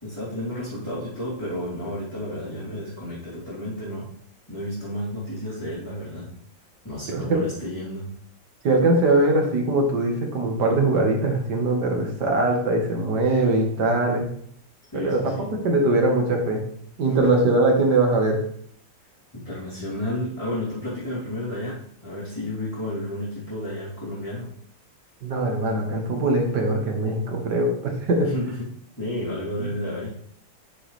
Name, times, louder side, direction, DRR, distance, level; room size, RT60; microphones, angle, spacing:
voice 1, 0.0-4.1 4.5-6.3 6.8-8.1 14.9-15.5 17.2-17.4 19.3-24.5 28.2-28.7 28.9-30.1, left 1 dB, 10° left, -14 dB, 3.5 m, -31 dB
voice 2, 7.1-7.4 8.6-14.3 14.9-15.3 15.6-16.6 17.0-18.4 25.2-28.3 29.6-29.7, right 2 dB, 65° right, 2 dB, 2.1 m, -21 dB
8.9 x 6.4 x 3.3 m, 0.62 s
omnidirectional pair, 2.0 m